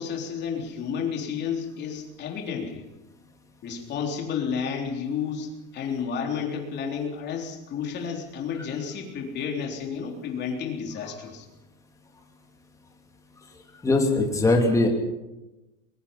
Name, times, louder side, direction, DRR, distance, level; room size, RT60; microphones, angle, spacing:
voice 1, 0.0-2.8 3.6-11.5, left 6 dB, 25° left, 1 dB, 3.8 m, -31 dB
voice 2, 13.8-14.9, left 2 dB, 10° left, 2 dB, 2.7 m, -20 dB
23.0 x 22.0 x 5.7 m, 1.0 s
supercardioid pair, 170°, 40 cm